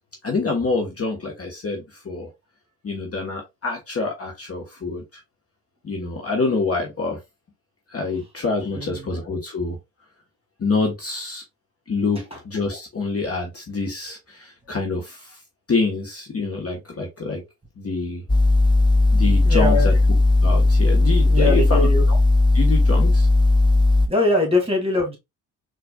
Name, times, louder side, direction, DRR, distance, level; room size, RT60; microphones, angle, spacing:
voice 1, 0.2-2.3 2.8-5.0 5.8-7.2 7.9-9.8 10.6-11.4 11.9-15.4 15.7-17.4 17.8-18.2 19.1-19.9 20.4-21.9 22.5-23.3, left 3 dB, 30° left, 1.1 m, -26 dB
voice 2, 8.7-9.2 12.3-12.4 19.4-19.9 21.0-22.0 24.1-25.2, left 2 dB, 15° right, 1.9 m, -23 dB
sound 1, 18.3-24.1, left 2 dB, 10° left, 0.5 m, -16 dB
4.4 x 2.5 x 2.2 m
hypercardioid pair, 50°, 44 cm